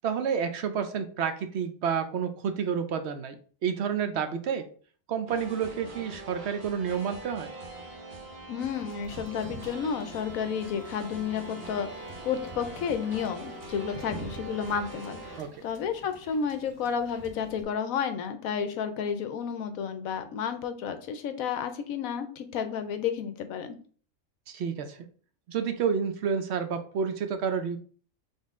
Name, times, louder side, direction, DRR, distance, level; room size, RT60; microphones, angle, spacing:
voice 1, 0.0-4.6 5.1-7.5 15.4-15.5 24.5-25.1 25.5-27.8, right 7 dB, 60° right, 8 dB, 0.7 m, -30 dB
sound 1, 5.3-15.4, right 1 dB, 45° right, 1.3 m, -43 dB
voice 2, 8.5-11.9 12.2-23.8, left 7 dB, 75° left, 9 dB, 1.0 m, -31 dB
Wind / Boat Water vehicle, 9.0-17.6, right 3 dB, 25° right, 0.5 m, -47 dB
4.0 x 3.6 x 3.6 m, 0.42 s
omnidirectional pair, 1.5 m